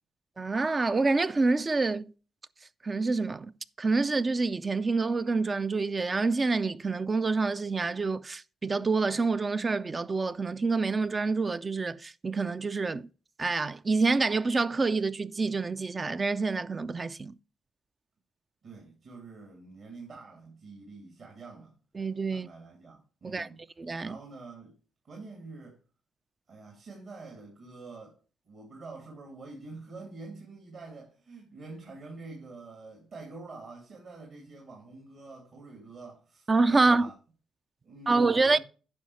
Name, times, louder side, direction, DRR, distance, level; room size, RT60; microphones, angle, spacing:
voice 1, 0.4-2.1 2.8-3.5 3.8-13.1 13.4-17.3 22.0-22.5 23.2-23.5 23.8-24.2 36.5-37.1 38.1-38.6, right 3 dB, 30° right, 0.4 m, -27 dB
voice 2, 18.6-21.8 22.3-23.6 24.0-24.8 25.0-25.8 26.5-28.2 28.4-37.1 37.8-38.6, right 3 dB, 60° right, 2.6 m, -46 dB
9.6 x 5.6 x 4.7 m
cardioid pair, 75°, 0 cm